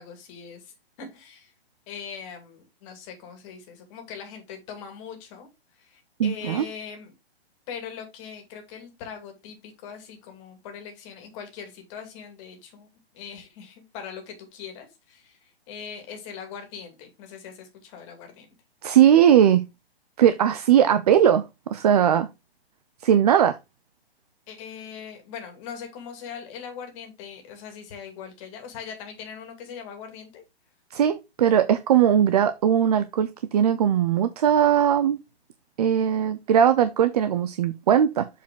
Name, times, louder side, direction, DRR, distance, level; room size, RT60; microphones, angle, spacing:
voice 1, 0.0-1.5 1.9-7.1 7.7-12.9 13.1-18.5 24.5-30.4, left 7 dB, 30° left, 2.3 m, -41 dB
voice 2, 6.2-6.6 18.8-19.6 20.2-21.5 21.7-22.3 23.0-23.6 30.9-35.2 35.8-38.3, right 9 dB, 40° right, 0.5 m, -19 dB
7.1 x 4.9 x 3.7 m
hypercardioid pair, 150°, 32 cm